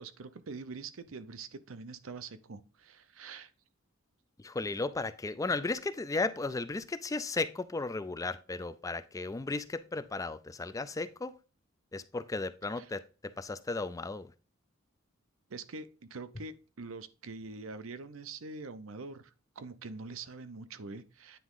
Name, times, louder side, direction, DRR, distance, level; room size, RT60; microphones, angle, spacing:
voice 1, 0.0-3.5 12.8-12.9 15.5-19.3 19.6-21.4, right 4 dB, 80° right, 0.7 m, -44 dB
voice 2, 4.4-11.3 11.9-14.3, left 3 dB, 15° left, 0.3 m, -35 dB
9.3 x 3.5 x 3.7 m
head